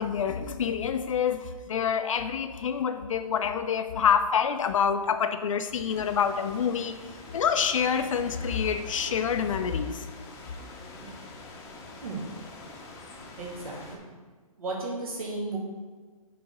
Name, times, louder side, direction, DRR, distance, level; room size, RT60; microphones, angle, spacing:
voice 1, 0.0-7.0 7.3-10.0, left 7 dB, 60° left, 9 dB, 0.5 m, -27 dB
sound 1, 5.9-14.0, left 2 dB, 15° left, 0.8 m, -45 dB
voice 2, 13.4-14.0 14.6-15.6, right 2 dB, 70° right, -3 dB, 2.1 m, -34 dB
6.8 x 4.2 x 5.4 m, 1.4 s
hypercardioid pair, 155°, 19 cm